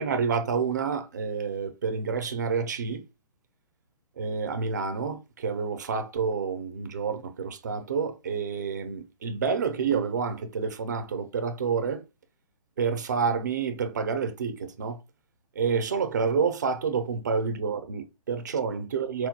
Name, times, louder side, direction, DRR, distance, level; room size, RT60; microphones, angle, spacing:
voice 1, 0.0-3.0 4.2-12.0 12.8-15.0 15.6-19.3, right 5 dB, 30° right, 0.4 m, -28 dB
4.4 x 2.2 x 2.7 m
hypercardioid pair, 170°, 19 cm